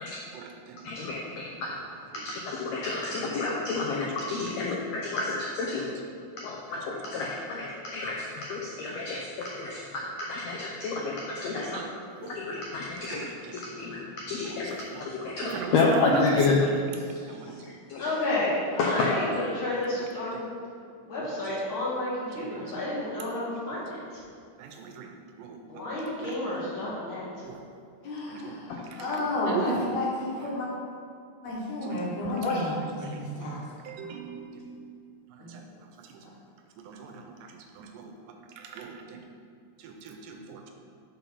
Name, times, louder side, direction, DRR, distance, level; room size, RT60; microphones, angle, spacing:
voice 1, 0.3-0.8 1.6-2.4 3.2-3.6 3.9-4.0 4.6-4.7 5.6-6.0 6.7-7.2 11.7-11.9 12.2-12.6 13.0-13.6 14.4-15.1 15.4-16.8 17.3-17.6 20.0-20.4 21.2-21.6 22.3-22.7 23.7-23.9 24.6-25.1 25.4-26.5 27.5-27.6 28.3-29.9 30.4-30.5 31.8-32.1 32.4-32.7 33.0-33.6 33.8-34.9 35.3-36.2 36.8-39.2 39.8-40.7, right 5 dB, 85° right, 3 dB, 2.2 m, -39 dB
voice 2, 0.8-1.8 2.1-5.9 6.4-11.7 12.2-14.7 15.0-16.6 17.9-18.0 18.8-19.1 28.7-28.8 32.4-32.6, left 4 dB, 80° left, -3 dB, 1.5 m, -30 dB
voice 3, 18.0-20.5 21.1-24.2 25.7-27.2, left 1 dB, 45° left, -8 dB, 1.9 m, -31 dB
voice 4, 28.0-30.7 31.4-33.6 35.4-35.5, left 2 dB, 65° left, -5 dB, 2.6 m, -32 dB
5.7 x 4.4 x 5.5 m, 2.3 s
omnidirectional pair, 3.8 m